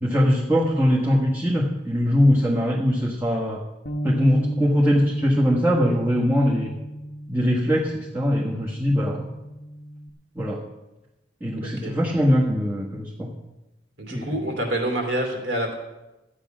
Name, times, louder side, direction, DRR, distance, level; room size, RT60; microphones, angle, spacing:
voice 1, 0.0-3.6 4.0-6.7 7.3-9.3 10.3-10.6 11.4-13.3 14.1-14.4, equal, 10° right, -6 dB, 1.3 m, -21 dB
Bass guitar, 3.9-10.1, right 1 dB, 55° left, 0.9 m, -33 dB
voice 2, 11.6-11.9 14.0-15.8, right 1 dB, 75° right, 1 dB, 3.0 m, -27 dB
13.5 x 8.5 x 6.0 m, 1.0 s
head